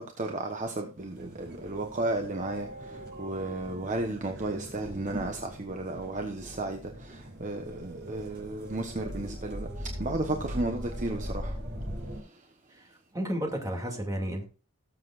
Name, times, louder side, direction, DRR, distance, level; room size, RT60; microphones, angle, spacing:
voice 1, 0.0-11.6 12.2-12.4, right 2 dB, 35° right, 1.1 m, -34 dB
sound 1, 1.0-12.2, equal, 50° right, 4.8 m, -40 dB
voice 2, 13.1-14.5, equal, 15° right, 2.5 m, -32 dB
19.5 x 7.5 x 2.5 m
head